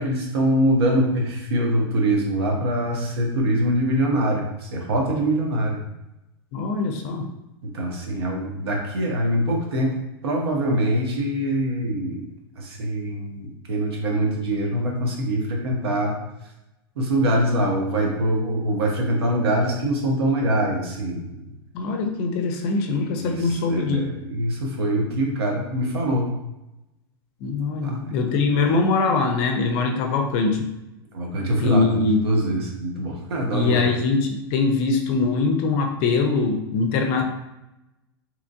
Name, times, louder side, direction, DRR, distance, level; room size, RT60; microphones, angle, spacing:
voice 1, 0.0-5.8 7.6-9.9 10.2-12.3 12.6-16.2 17.0-21.3 23.1-26.3 27.8-28.0 28.3-28.6 31.1-33.8, right 1 dB, 80° right, 0 dB, 0.8 m, -24 dB
voice 2, 6.5-7.3 21.7-24.1 27.4-30.7 31.6-32.2 33.5-37.2, left 4 dB, 45° left, 4 dB, 0.5 m, -22 dB
2.9 x 2.5 x 2.4 m, 0.94 s
hypercardioid pair, 110°, 13 cm